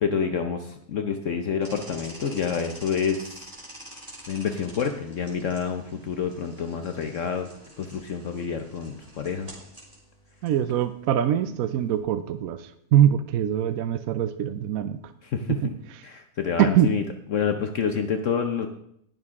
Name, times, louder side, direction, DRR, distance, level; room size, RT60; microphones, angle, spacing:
voice 1, 0.0-3.5 4.3-7.5 7.8-9.5 15.2-15.7 16.0-17.0 17.3-18.7, left 6 dB, 60° left, 6 dB, 1.0 m, -28 dB
sound 1, 1.6-12.0, right 1 dB, 20° right, 3.0 m, -47 dB
voice 2, 10.4-12.6 12.9-15.0 16.6-16.9, right 10 dB, 70° right, 11 dB, 1.0 m, -22 dB
19.5 x 6.5 x 3.6 m, 0.71 s
omnidirectional pair, 1.7 m